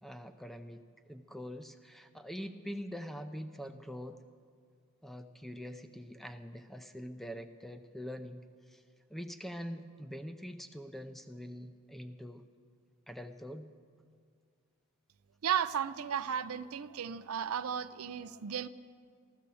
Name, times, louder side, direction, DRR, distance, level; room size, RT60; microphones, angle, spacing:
voice 1, 0.0-4.2 5.0-8.4 8.7-8.8 9.1-12.4 13.1-13.7, equal, ahead, 8 dB, 0.4 m, -44 dB
voice 2, 15.4-18.7, right 8 dB, 70° right, 14 dB, 0.5 m, -34 dB
14.5 x 13.5 x 6.9 m, 2.2 s
head